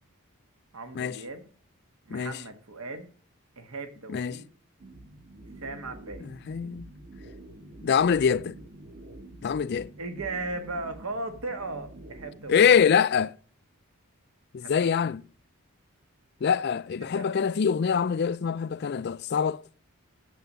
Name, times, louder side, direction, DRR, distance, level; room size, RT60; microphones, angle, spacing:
voice 1, 0.7-1.5 2.1-3.1 3.6-4.5 5.6-6.2 10.0-12.5 14.6-15.2 17.0-17.2, right 2 dB, 75° right, 1.5 m, -37 dB
voice 2, 2.1-2.4 4.1-4.4 6.2-6.9 7.8-8.6 9.4-9.9 12.5-13.3 14.5-15.2 16.4-19.6, left 7 dB, 50° left, 0.4 m, -24 dB
sound 1, 4.8-12.8, right 1 dB, 45° right, 1.3 m, -47 dB
9.2 x 7.1 x 6.5 m
head